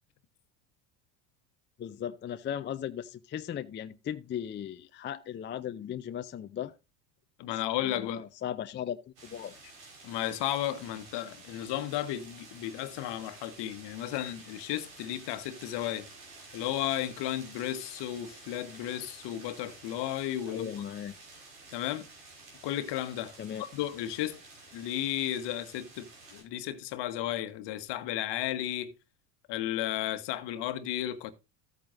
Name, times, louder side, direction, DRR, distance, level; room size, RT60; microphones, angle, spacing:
voice 1, 1.8-6.7 7.8-9.0 9.2-9.5 20.5-21.2 23.4-23.6, left 9 dB, 25° left, 0.5 m, -37 dB
voice 2, 7.4-8.2 10.0-16.1 16.5-20.7 21.7-22.1 22.6-24.4 24.7-28.9 29.5-31.3, left 12 dB, 55° left, 1.3 m, -34 dB
sound 1, 9.2-26.4, right 3 dB, 85° right, 4.7 m, -51 dB
14.0 x 8.6 x 2.6 m
hypercardioid pair, 80°, 50 cm